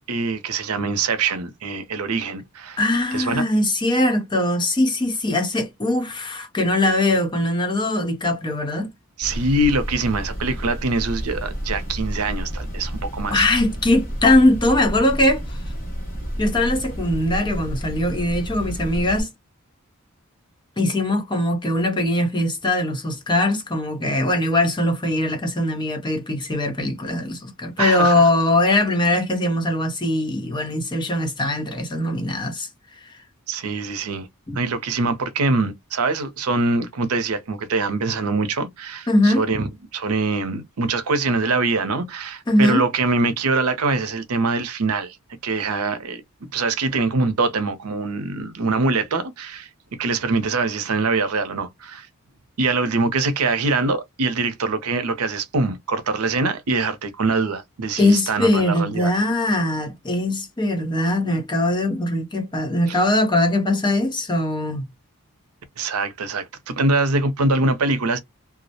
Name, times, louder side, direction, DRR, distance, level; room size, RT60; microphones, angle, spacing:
voice 1, 0.1-2.8 3.1-3.5 9.2-13.4 27.8-28.2 33.5-34.3 34.5-39.7 39.9-45.2 45.4-46.2 46.5-49.7 50.0-52.1 52.6-59.1 62.9-63.0 65.8-68.2, right 3 dB, 80° right, 0.6 m, -23 dB
voice 2, 2.8-8.9 13.3-15.6 16.4-19.3 20.8-32.7 34.5-34.6 39.1-39.5 42.5-42.8 58.0-64.9, left 1 dB, 20° left, 0.5 m, -21 dB
sound 1, 9.2-19.2, equal, 40° left, 1.0 m, -30 dB
2.3 x 2.0 x 2.7 m
head